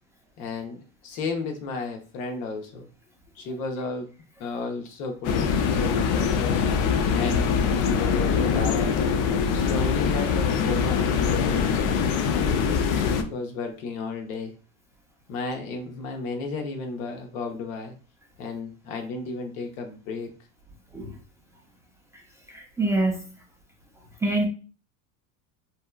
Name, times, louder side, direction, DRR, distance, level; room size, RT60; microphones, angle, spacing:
voice 1, 0.4-2.9 3.4-4.1 4.4-6.6 7.1-9.0 9.5-11.8 12.3-14.6 15.3-17.9 18.4-20.3, left 4 dB, 80° left, 4 dB, 0.9 m, -33 dB
sound 1, 5.2-13.2, left 6 dB, 50° left, 0.4 m, -23 dB
voice 2, 22.5-23.2 24.2-24.5, right 2 dB, 10° right, -1 dB, 0.4 m, -25 dB
2.8 x 2.2 x 2.2 m, 0.36 s
supercardioid pair, 115°, 41 cm